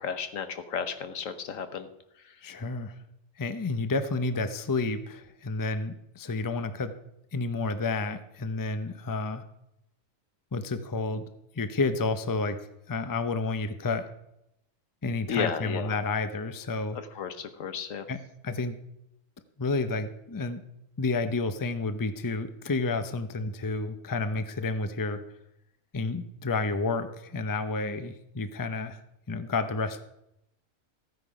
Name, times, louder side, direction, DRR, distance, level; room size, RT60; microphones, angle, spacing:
voice 1, 0.0-1.9 2.2-2.4 15.3-15.9 16.9-18.1, left 6 dB, 80° left, 9 dB, 1.4 m, -33 dB
voice 2, 2.4-2.9 3.4-7.0 7.3-9.5 10.5-11.3 11.5-12.6 12.9-14.1 15.0-17.0 18.1-18.8 19.6-20.6 21.0-25.2 25.9-29.0 29.3-30.0, left 3 dB, 20° left, 10 dB, 0.6 m, -30 dB
14.5 x 9.4 x 5.1 m, 0.82 s
omnidirectional pair, 1.4 m